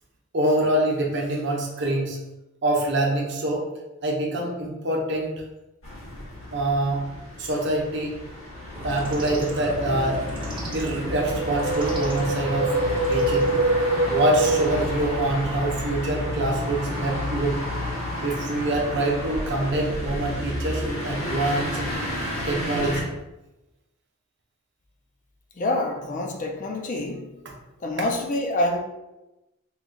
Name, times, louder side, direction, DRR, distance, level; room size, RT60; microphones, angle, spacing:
voice 1, 0.3-2.2 2.6-3.7 4.0-5.3 6.5-7.0 7.4-8.2 8.8-10.2 10.7-13.5 14.1-17.6 18.2-21.9 22.4-23.1, right 1 dB, 55° right, -1 dB, 0.8 m, -25 dB
sound 1, 5.8-23.0, left 1 dB, 75° left, 1.4 m, -31 dB
sound 2, 8.7-14.7, equal, 25° right, 0.6 m, -37 dB
Wind, 11.3-15.6 15.9-16.0, right 2 dB, 90° right, 0.4 m, -25 dB
voice 2, 25.6-27.3 27.8-28.8, left 1 dB, 40° left, 2 dB, 0.4 m, -26 dB
3.2 x 2.4 x 3.8 m, 0.99 s
head